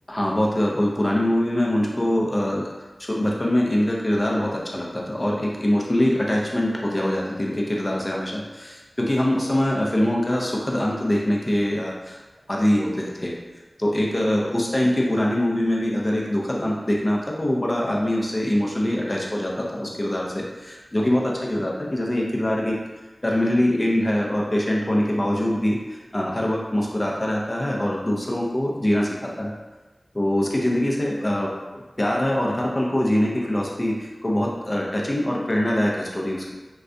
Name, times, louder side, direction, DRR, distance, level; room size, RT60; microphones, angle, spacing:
voice 1, 0.1-12.2 12.5-13.3 13.8-22.8 23.2-29.5 30.1-36.5, left 1 dB, 35° left, -2 dB, 0.5 m, -23 dB
3.3 x 2.4 x 2.6 m, 1.2 s
wide cardioid pair, 60°, 0 cm